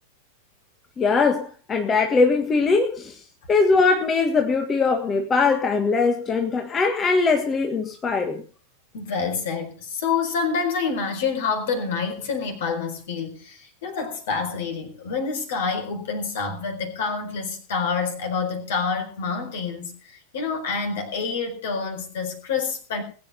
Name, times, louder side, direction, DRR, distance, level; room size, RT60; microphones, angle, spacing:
voice 1, 1.0-3.2 3.5-8.4, left 4 dB, 20° left, 4 dB, 1.7 m, -21 dB
voice 2, 8.9-23.0, left 5 dB, 55° left, 5 dB, 4.4 m, -27 dB
20.5 x 8.8 x 5.1 m, 0.38 s
figure-of-eight pair, 90°, 0 cm